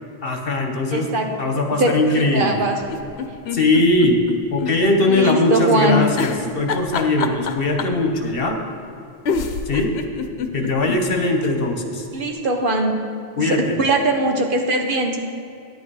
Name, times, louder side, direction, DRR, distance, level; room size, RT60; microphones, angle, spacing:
voice 1, 0.2-1.1 1.4-2.6 3.5-4.2 4.5-8.7 9.7-9.9 10.5-12.0 13.4-13.8, left 2 dB, 65° left, 3 dB, 1.3 m, -20 dB
voice 2, 0.9-1.3 1.8-2.8 5.0-6.0 12.1-12.9 13.4-15.2, right 2 dB, 55° right, 3 dB, 1.3 m, -20 dB
sound 1, 2.8-4.7 5.1-5.2 6.1-8.0 8.9-9.0 9.2-11.0 11.4-11.5 11.7-11.8, left 5 dB, 80° left, 1.0 m, -26 dB
10.5 x 8.5 x 4.8 m, 2.6 s
omnidirectional pair, 1.0 m